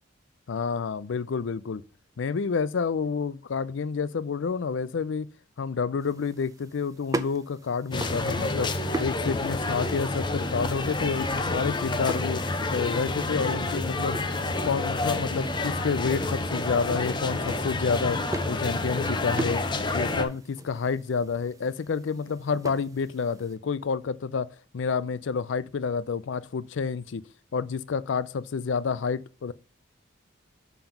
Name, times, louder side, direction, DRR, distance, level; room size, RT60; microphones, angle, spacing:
voice 1, 0.5-1.8 2.2-5.3 5.6-14.2 14.6-18.2 18.5-19.6 19.9-24.5 24.7-27.2 27.5-29.5, left 5 dB, 65° left, 0.4 m, -29 dB
sound 1, 6.0-23.6, right 2 dB, 15° right, 0.4 m, -41 dB
sound 2, 7.9-20.2, left 2 dB, 25° left, 0.6 m, -29 dB
7.0 x 3.9 x 5.7 m
head